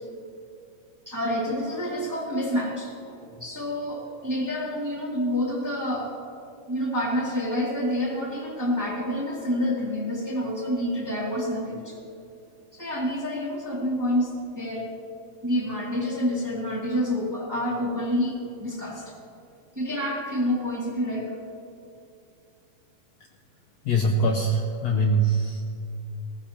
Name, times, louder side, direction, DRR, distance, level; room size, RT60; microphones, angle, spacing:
voice 1, 1.1-6.1 6.7-12.0 12.7-14.9 15.4-19.2 19.8-21.3, equal, 5° right, -4 dB, 1.9 m, -28 dB
voice 2, 23.8-25.6, right 1 dB, 70° left, 2 dB, 1.7 m, -23 dB
19.5 x 17.0 x 2.9 m, 2.6 s
omnidirectional pair, 3.7 m